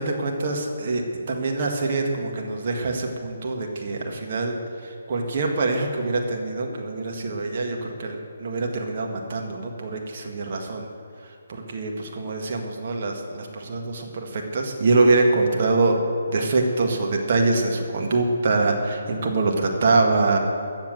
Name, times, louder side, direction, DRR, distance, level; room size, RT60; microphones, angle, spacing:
voice 1, 0.0-4.6 4.8-10.9 11.5-16.0 16.3-20.4, right 3 dB, 45° right, 1 dB, 1.8 m, -24 dB
13.5 x 7.3 x 7.7 m, 2.4 s
figure-of-eight pair, 140°, 0 cm